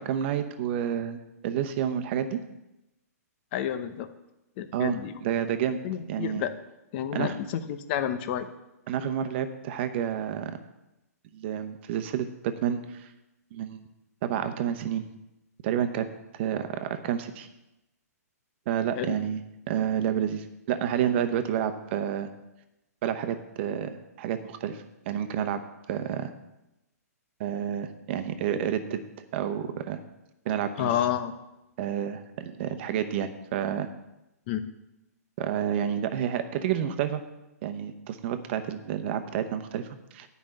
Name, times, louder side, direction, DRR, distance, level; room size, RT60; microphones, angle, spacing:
voice 1, 0.0-2.4 4.7-5.8 6.1-6.4 7.1-7.3 8.9-10.6 11.3-13.1 13.5-13.8 14.2-15.0 15.6-16.1 16.3-17.5 18.7-19.4 19.7-22.3 23.0-25.6 25.9-26.3 27.4-29.0 29.3-30.0 30.4-30.9 31.8-33.9 35.4-37.2 37.6-40.3, right 9 dB, 45° right, 9 dB, 1.0 m, -29 dB
voice 2, 3.5-4.1 4.6-5.2 5.8-6.5 6.9-8.5 19.0-19.2 30.8-31.3 34.5-34.7, left 10 dB, 40° left, 10 dB, 0.8 m, -30 dB
9.7 x 5.5 x 7.7 m, 0.94 s
hypercardioid pair, 150°, 9 cm